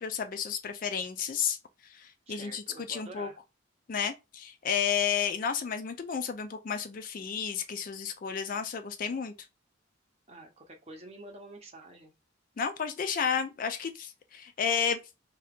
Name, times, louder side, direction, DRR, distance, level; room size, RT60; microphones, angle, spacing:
voice 1, 0.0-1.6 1.9-3.3 3.9-9.3 12.6-15.0, left 7 dB, 40° left, 0.3 m, -32 dB
voice 2, 2.3-3.4 10.3-12.1, right 1 dB, 30° right, 0.7 m, -48 dB
2.7 x 2.3 x 3.4 m
head